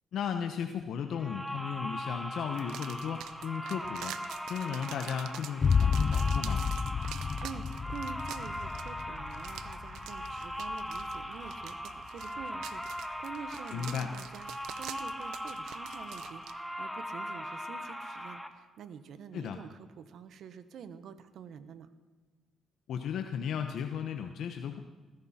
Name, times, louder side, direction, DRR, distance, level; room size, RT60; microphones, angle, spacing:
voice 1, 0.1-4.1 4.5-6.6 13.7-14.1 19.3-19.6 22.9-24.8, left 7 dB, 70° left, 6 dB, 1.0 m, -35 dB
sound 1, 1.1-18.5, equal, ahead, 1.5 m, -40 dB
sound 2, 2.5-16.6, right 12 dB, 90° right, 0.7 m, -47 dB
sound 3, 5.6-13.0, left 6 dB, 45° left, 0.5 m, -32 dB
voice 2, 7.4-21.9, right 7 dB, 70° right, 12 dB, 1.2 m, -47 dB
19.5 x 15.0 x 4.4 m, 1.3 s
cardioid pair, 90°, 0 cm